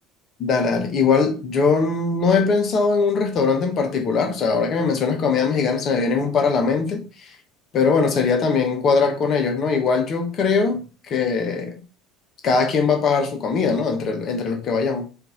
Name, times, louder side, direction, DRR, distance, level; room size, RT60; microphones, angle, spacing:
voice 1, 0.4-7.3 7.7-10.8 11.1-11.7 12.4-15.0, left 4 dB, 40° left, 1.1 m, -21 dB
4.4 x 2.7 x 3.8 m
figure-of-eight pair, 65°, 0 cm